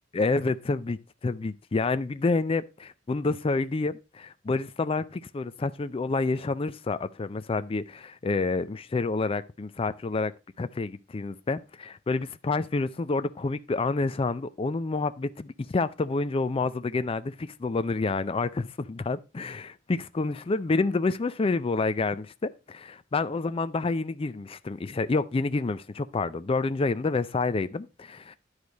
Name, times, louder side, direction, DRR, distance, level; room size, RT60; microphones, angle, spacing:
voice 1, 0.1-10.3 10.6-28.4, left 3 dB, 25° left, 0.4 m, -28 dB
10.5 x 4.8 x 3.9 m
head